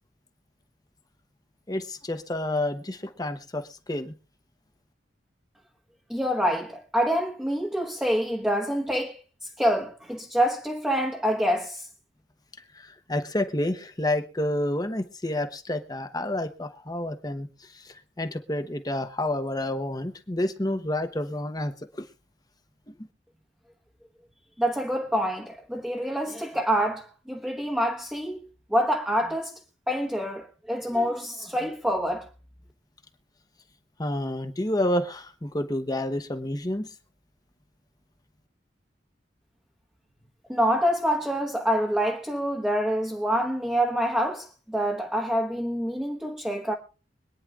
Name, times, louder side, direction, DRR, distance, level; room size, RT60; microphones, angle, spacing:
voice 1, 1.7-3.6 3.9-4.1 12.8-17.5 17.7-22.0 34.0-36.9, left 1 dB, 20° left, 1.0 m, -29 dB
voice 2, 6.1-11.9 24.6-28.4 28.7-29.6 29.9-32.3 40.5-46.7, equal, 5° right, 1.2 m, -26 dB
25.0 x 9.8 x 2.4 m
head